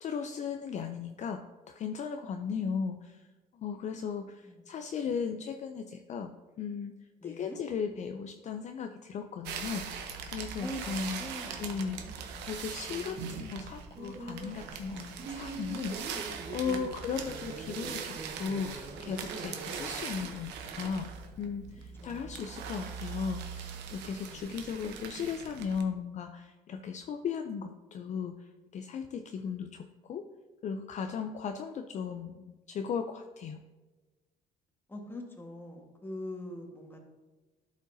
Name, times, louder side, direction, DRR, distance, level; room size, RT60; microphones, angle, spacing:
voice 1, 0.0-3.3 3.5-6.3 6.6-7.0 7.2-11.2 11.6-16.2 16.5-21.1 21.4-30.3 30.6-33.6, left 6 dB, 45° left, 6 dB, 0.5 m, -37 dB
voice 2, 7.2-7.6 10.6-12.2 12.9-13.4 16.7-16.8 22.0-22.5 24.3-24.6 34.9-37.0, left 1 dB, 15° left, 1 dB, 1.4 m, -44 dB
sound 1, 9.4-25.8, right 6 dB, 85° right, 0.9 m, -41 dB
sound 2, 13.9-20.3, right 3 dB, 40° right, 1.1 m, -44 dB
11.5 x 5.1 x 2.7 m, 1.2 s
cardioid pair, 110°, 17 cm